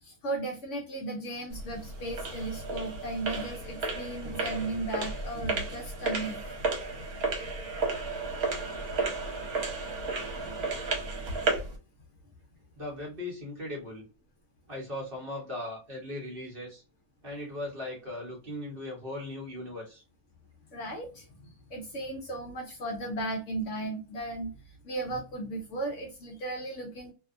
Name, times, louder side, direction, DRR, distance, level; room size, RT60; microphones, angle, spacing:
voice 1, 0.0-6.4 10.3-10.5 20.7-24.5 24.8-27.1, right 2 dB, 65° left, 2 dB, 0.8 m, -36 dB
sound 1, 1.5-11.8, right 3 dB, 70° right, 1.3 m, -33 dB
voice 2, 12.8-14.0 14.7-16.8 17.2-20.0, left 1 dB, 45° right, -3 dB, 0.9 m, -38 dB
2.7 x 2.1 x 2.4 m, 0.32 s
omnidirectional pair, 1.6 m